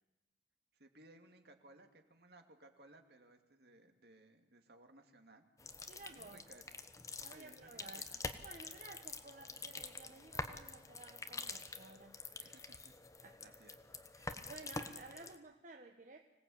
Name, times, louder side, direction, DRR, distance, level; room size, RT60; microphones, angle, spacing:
voice 1, 0.7-5.7 6.1-6.6 7.3-8.2 12.4-13.0 13.4-13.8, right 2 dB, 60° right, 5 dB, 2.5 m, -62 dB
sound 1, 5.6-15.4, left 3 dB, 20° left, 1.1 m, -47 dB
voice 2, 5.9-6.4 7.2-8.0 8.4-12.2 13.2-13.5 14.1-16.2, right 3 dB, 45° right, 4 dB, 1.3 m, -55 dB
25.5 x 18.0 x 8.7 m, 1.0 s
head